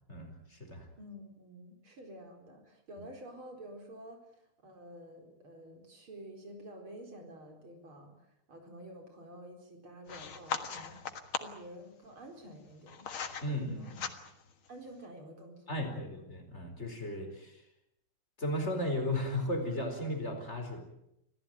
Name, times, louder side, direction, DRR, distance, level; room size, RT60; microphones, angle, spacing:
voice 1, 0.1-0.9 13.4-14.1 15.7-17.6 18.4-20.8, left 1 dB, 30° left, 4 dB, 4.8 m, -35 dB
voice 2, 1.0-11.0 11.3-13.1 13.5-14.0 14.7-16.0, right 1 dB, 70° right, 3 dB, 5.2 m, -50 dB
sound 1, 10.1-11.7 12.5-13.5 13.8-14.5, left 6 dB, 70° left, 2.5 m, -39 dB
26.0 x 16.5 x 9.2 m, 0.82 s
omnidirectional pair, 2.4 m